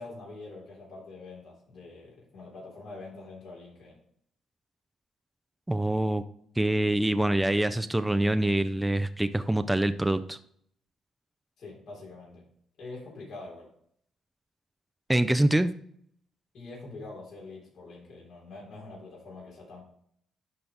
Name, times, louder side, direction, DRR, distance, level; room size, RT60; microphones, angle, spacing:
voice 1, 0.0-4.0 11.6-12.4 12.8-13.7 16.5-19.8, left 3 dB, 65° left, -4 dB, 3.5 m, -45 dB
voice 2, 5.7-6.2 6.6-10.4 15.1-15.7, right 1 dB, 10° right, 10 dB, 0.4 m, -25 dB
12.0 x 4.0 x 3.5 m, 0.66 s
cardioid pair, 90°, 0 cm